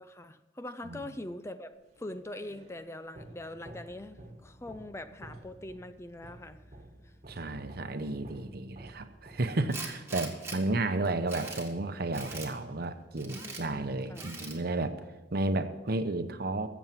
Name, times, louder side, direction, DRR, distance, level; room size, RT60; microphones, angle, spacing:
voice 1, 0.0-6.6 7.0-7.1 13.4-14.3, left 1 dB, 15° left, 11 dB, 0.5 m, -43 dB
sound 1, 1.9-10.0, right 1 dB, 40° right, 1.4 m, -52 dB
voice 2, 7.3-14.9 15.3-16.7, right 2 dB, 55° right, 9 dB, 0.8 m, -32 dB
Tools, 9.7-10.6 11.0-11.7 12.1-12.5 13.2-13.6 14.1-14.6, right 3 dB, 15° right, 1.8 m, -41 dB
14.5 x 7.2 x 6.0 m, 1.2 s
head